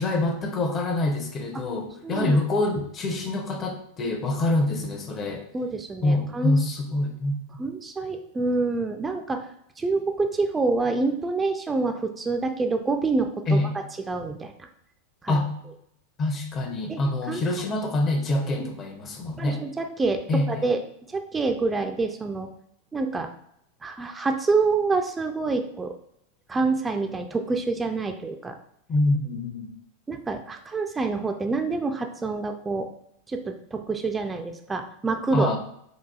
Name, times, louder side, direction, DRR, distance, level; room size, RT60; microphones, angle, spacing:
voice 1, 0.0-5.5 6.0-7.4 13.5-13.7 15.3-15.5 16.2-19.6 20.3-20.7 28.9-29.8 35.3-35.6, left 2 dB, 30° left, 4 dB, 0.6 m, -25 dB
voice 2, 2.0-2.4 5.5-6.6 7.6-9.5 9.8-13.6 14.1-14.5 15.2-15.4 16.9-17.0 17.3-17.4 18.6-18.7 19.4-20.8 21.1-22.5 22.9-23.3 23.8-25.9 26.5-28.6 30.1-32.9 33.3-35.6, right 3 dB, 15° right, 5 dB, 0.3 m, -27 dB
3.9 x 2.3 x 2.3 m, 0.73 s
figure-of-eight pair, 90°, 0 cm